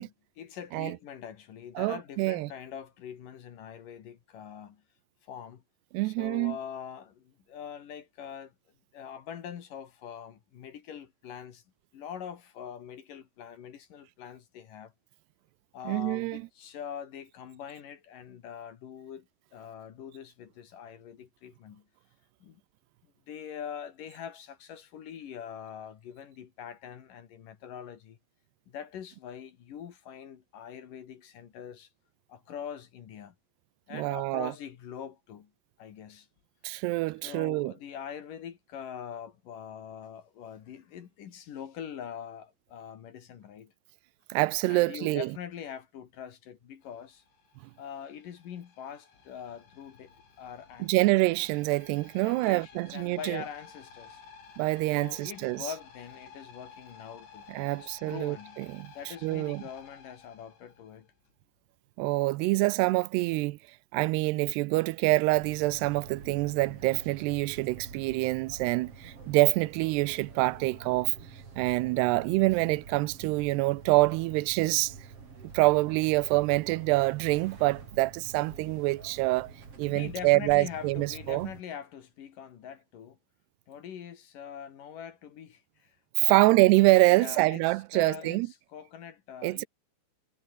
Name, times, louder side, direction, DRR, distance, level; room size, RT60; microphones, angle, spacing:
voice 1, 0.0-4.8 5.2-5.6 6.0-8.5 8.9-11.6 11.9-14.9 15.7-21.8 22.4-22.6 23.3-28.2 28.7-31.9 32.3-33.3 33.9-35.5 35.8-36.3 37.0-43.7 44.7-47.2 47.8-51.0 52.2-54.2 54.9-57.5 57.8-58.6 58.9-61.1 79.9-83.2 83.7-86.6 87.1-89.6, left 8 dB, 55° left, 3.0 m, -43 dB
voice 2, 1.8-2.5 5.9-6.6 15.9-16.4 33.9-34.5 36.6-37.7 44.3-45.3 50.8-53.4 54.6-55.6 57.5-58.9 59.2-59.6 62.0-63.6 63.9-71.1 71.6-74.9 75.5-79.5 79.8-81.5 86.2-88.5 89.4-89.6, right 22 dB, 85° right, 2.4 m, -26 dB
sound 1, 46.8-61.4, left 5 dB, 75° left, 8.4 m, -54 dB
sound 2, 65.3-81.6, right 5 dB, 35° right, 4.0 m, -47 dB
omnidirectional pair, 5.3 m